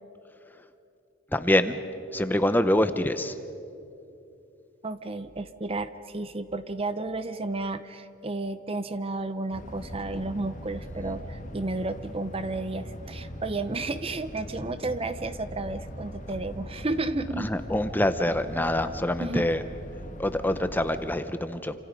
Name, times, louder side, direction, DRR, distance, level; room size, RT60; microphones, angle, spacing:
voice 1, 1.3-1.8 2.1-3.3 11.0-11.1 17.4-19.6 20.2-21.7, left 1 dB, 10° left, 10 dB, 0.8 m, -25 dB
voice 2, 4.8-17.5 19.2-19.5, right 2 dB, 30° right, 11 dB, 0.7 m, -32 dB
sound 1, 9.5-21.2, equal, 35° left, 1.8 m, -41 dB
28.5 x 26.5 x 5.3 m, 2.7 s
head